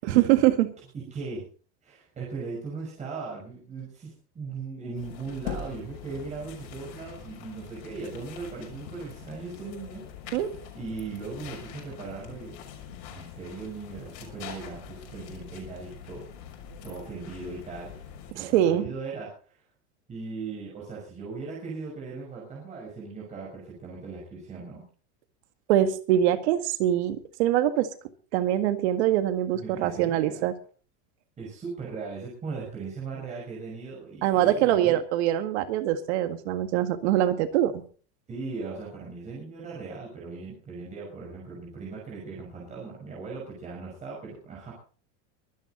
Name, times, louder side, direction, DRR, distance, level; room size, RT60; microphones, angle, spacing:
voice 1, 0.0-0.7 10.3-10.5 18.3-18.9 25.7-27.9 28.3-30.5 34.2-37.8, right 12 dB, 65° right, 9 dB, 1.9 m, -23 dB
voice 2, 1.1-1.5 1.8-10.0 10.8-12.6 13.1-16.2 16.8-17.9 18.3-19.6 20.1-24.8 29.5-30.5 31.4-35.0 38.3-44.7, right 4 dB, 20° right, -4 dB, 5.8 m, -38 dB
sound 1, 5.0-18.3, left 7 dB, 55° left, 6.4 m, -43 dB
24.0 x 9.9 x 4.0 m, 0.41 s
supercardioid pair, 155°, 37 cm